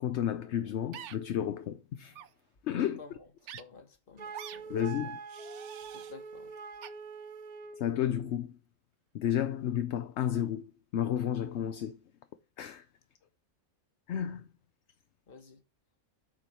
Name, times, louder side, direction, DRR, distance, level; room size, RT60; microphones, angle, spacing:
voice 1, 0.0-2.1 2.7-3.0 4.7-5.2 7.8-8.5 9.1-10.6 10.9-12.0 12.6-12.8 14.1-14.5, left 10 dB, 65° left, 0.9 m, -32 dB
sound 1, 0.9-1.2 2.1-2.3 3.5-3.6 4.3-4.6 5.3-6.1 6.8-6.9, right 10 dB, 65° right, 0.9 m, -45 dB
voice 2, 2.8-3.2 3.6-4.7 5.9-6.5 15.3-15.6, left 4 dB, 45° left, 1.3 m, -51 dB
Wind instrument woodwind instrument, 4.2-7.9, right 5 dB, 50° right, 0.5 m, -44 dB
7.7 x 4.7 x 5.6 m
omnidirectional pair, 1.4 m